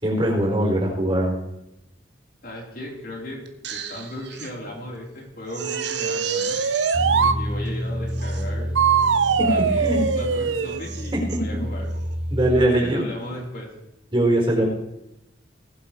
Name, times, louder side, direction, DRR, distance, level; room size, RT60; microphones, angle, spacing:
voice 1, 0.0-1.4 9.4-9.5 9.8-10.0 11.3-11.4 12.3-13.0 14.1-14.7, right 1 dB, 25° right, -1 dB, 4.4 m, -21 dB
voice 2, 2.4-3.4 3.7-6.6 7.1-8.7 9.4-11.9 12.5-13.7, left 1 dB, 55° left, -3 dB, 3.6 m, -36 dB
Crying sobbing, 3.4-4.5 4.9-5.0 5.5-7.0 7.6-7.7 8.1-8.5 9.0-9.4 9.8-10.3 10.6-11.4 11.9-12.1, right 8 dB, 65° right, 1.3 m, -35 dB
sound 1, 5.6-7.4 8.8-10.8, right 6 dB, 85° right, 0.6 m, -22 dB
sound 2, 6.9-12.7, equal, 5° right, 1.2 m, -29 dB
20.0 x 7.5 x 4.5 m, 0.87 s
head